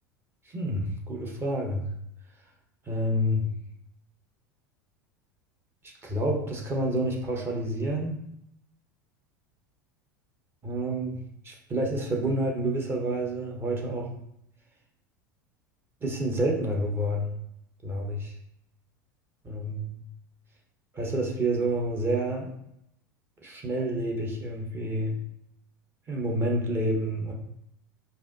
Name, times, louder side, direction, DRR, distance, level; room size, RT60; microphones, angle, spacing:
voice 1, 0.4-1.9 2.9-3.5 5.8-8.2 10.6-14.1 16.0-17.3 17.8-18.3 19.4-20.0 20.9-22.5 23.4-25.2 26.1-27.3, right 1 dB, 20° right, 0 dB, 1.2 m, -29 dB
4.8 x 2.7 x 4.0 m, 0.78 s
figure-of-eight pair, 80°, 10 cm